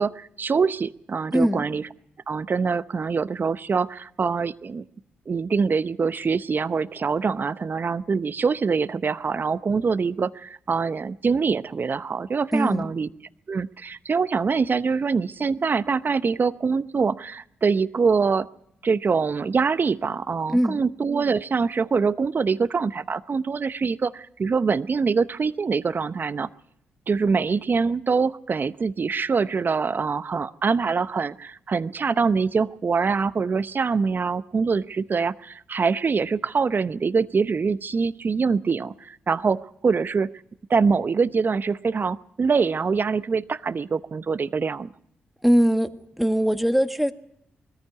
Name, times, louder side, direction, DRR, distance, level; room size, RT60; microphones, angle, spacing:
voice 1, 0.0-1.8 2.3-4.8 5.3-13.1 13.5-18.5 18.8-26.5 27.1-40.3 40.7-44.9, right 5 dB, 45° right, 15 dB, 0.7 m, -24 dB
voice 2, 1.3-1.6 12.5-12.9 20.5-20.8 45.4-45.9 46.2-47.1, equal, ahead, 8 dB, 1.6 m, -21 dB
21.5 x 14.0 x 9.4 m, 0.75 s
supercardioid pair, 45°, 5 cm